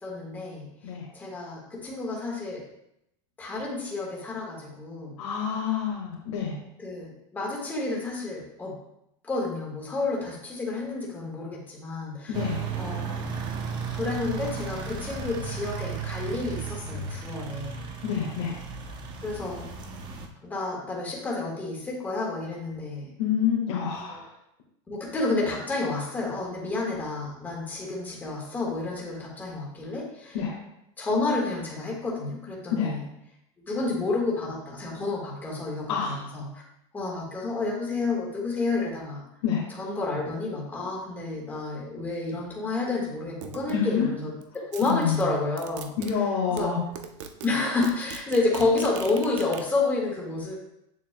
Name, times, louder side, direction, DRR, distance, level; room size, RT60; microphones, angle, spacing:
voice 1, 0.0-0.7 1.1-2.6 3.4-5.1 6.8-8.7 9.2-12.3 12.8-13.2 13.9-17.8 19.2-19.7 20.4-23.1 24.9-30.4 31.0-33.0 33.7-36.4 36.9-39.2 39.8-45.9 46.5-46.7 47.4-50.6, left 3 dB, 10° left, -3 dB, 1.5 m, -30 dB
voice 2, 0.8-1.1 5.2-6.6 12.3-12.7 18.0-18.6 23.2-24.3 30.3-30.6 32.7-32.9 35.9-36.3 39.4-39.7 43.7-44.1 44.8-45.3 46.0-46.8, left 7 dB, 80° left, -4 dB, 1.6 m, -27 dB
sound 1, 12.3-20.3, right 5 dB, 30° right, 0.7 m, -35 dB
sound 2, 43.4-43.8 44.4-46.1 46.6-46.7 46.9-47.5 47.8-49.6, right 8 dB, 70° right, 0.8 m, -40 dB
8.0 x 7.3 x 2.2 m, 0.81 s
supercardioid pair, 165°, 16 cm